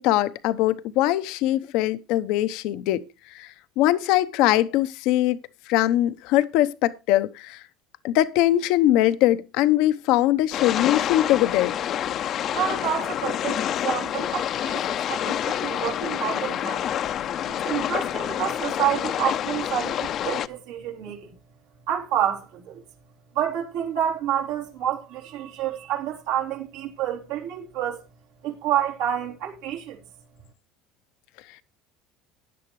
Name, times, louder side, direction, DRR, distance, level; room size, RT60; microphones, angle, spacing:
voice 1, 0.0-3.0 3.3-5.4 5.7-7.6 8.0-11.8, left 14 dB, 70° left, 0.8 m, -22 dB
sound 1, 10.5-20.5, left 10 dB, 45° left, 0.7 m, -28 dB
voice 2, 12.5-16.8 17.6-21.3 21.9-22.8 23.4-28.0 28.4-30.0, right 10 dB, 85° right, 3.6 m, -28 dB
15.5 x 10.5 x 3.1 m
cardioid pair, 125°, 0 cm